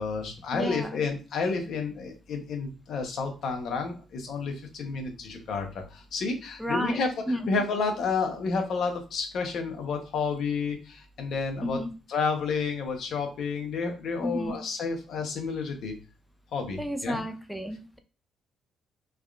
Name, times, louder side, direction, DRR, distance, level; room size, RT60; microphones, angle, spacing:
voice 1, 0.0-11.8 12.1-15.9 16.5-17.2, left 4 dB, 70° left, 4 dB, 0.7 m, -30 dB
voice 2, 0.5-1.0 6.6-7.0 7.3-7.5 11.6-11.9 14.2-14.6 16.8-18.0, equal, ahead, 7 dB, 0.4 m, -32 dB
3.4 x 2.3 x 2.4 m, 0.32 s
cardioid pair, 90°, 0 cm